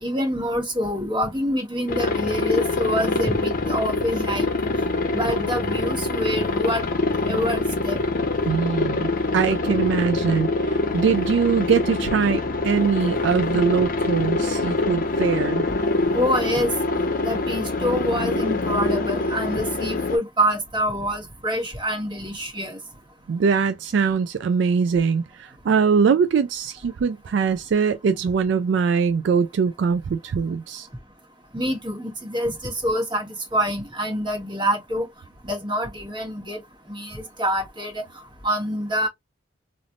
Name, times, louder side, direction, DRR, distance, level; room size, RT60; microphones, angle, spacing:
voice 1, 0.0-4.5 5.1-6.8 7.2-8.0 16.1-16.7 17.2-22.8 31.5-35.1 35.4-36.6 36.9-38.0 38.4-39.1, equal, 25° right, 1.4 m, -26 dB
Aircraft, 1.9-20.2, left 2 dB, 50° left, 0.6 m, -25 dB
voice 2, 8.5-15.7 23.3-30.9, right 6 dB, 70° right, 0.3 m, -22 dB
3.3 x 2.5 x 2.4 m
head